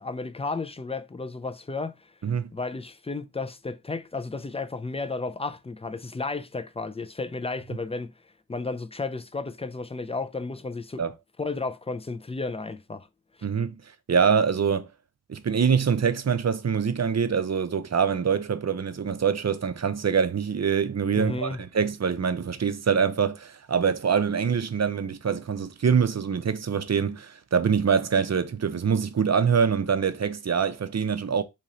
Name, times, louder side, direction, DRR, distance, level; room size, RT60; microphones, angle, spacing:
voice 1, 0.0-2.1 2.5-8.1 8.5-11.0 11.4-13.1 21.1-21.6, left 3 dB, 15° left, 0.3 m, -33 dB
voice 2, 13.4-13.7 14.1-14.9 15.3-31.4, right 6 dB, 40° right, 0.5 m, -24 dB
3.0 x 2.9 x 3.8 m
wide cardioid pair, 60°, 42 cm